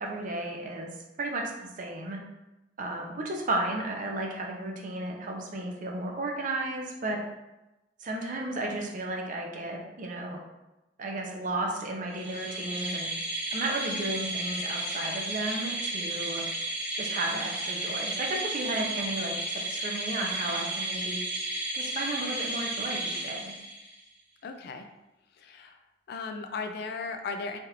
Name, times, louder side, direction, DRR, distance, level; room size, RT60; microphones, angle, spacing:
voice 1, 0.0-0.9 1.2-2.2 2.8-7.2 8.0-10.4 11.0-13.1 13.5-16.4 17.0-21.2 21.7-23.5, right 2 dB, 45° right, 1 dB, 0.5 m, -33 dB
sound 1, 12.1-24.0, right 2 dB, 5° right, 0.9 m, -33 dB
voice 2, 24.4-24.9 25.4-25.8 26.1-27.6, left 4 dB, 60° left, 6 dB, 0.3 m, -36 dB
3.2 x 2.4 x 2.9 m, 0.97 s
head